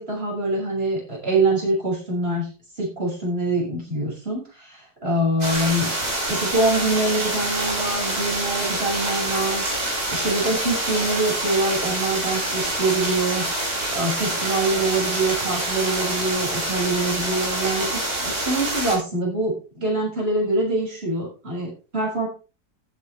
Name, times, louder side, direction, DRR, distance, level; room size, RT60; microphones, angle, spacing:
voice 1, 0.0-2.5 2.8-9.7 10.1-13.5 13.9-22.3, right 2 dB, 35° right, -2 dB, 6.8 m, -24 dB
sound 1, 5.4-19.0, right 1 dB, 55° right, 5.5 m, -26 dB
14.5 x 9.0 x 3.4 m, 0.32 s
omnidirectional pair, 1.9 m